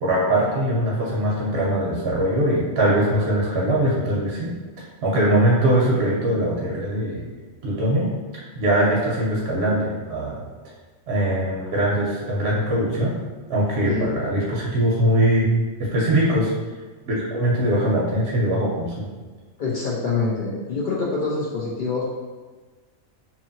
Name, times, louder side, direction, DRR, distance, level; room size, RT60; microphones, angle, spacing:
voice 1, 0.0-4.5 4.8-7.3 7.6-8.1 8.5-10.4 11.1-13.1 13.5-15.5 15.8-16.5 17.1-19.1, right 1 dB, 60° right, -5 dB, 0.8 m, -21 dB
voice 2, 19.6-22.0, left 4 dB, 85° left, -6 dB, 0.4 m, -25 dB
2.8 x 2.5 x 2.6 m, 1.3 s
omnidirectional pair, 1.4 m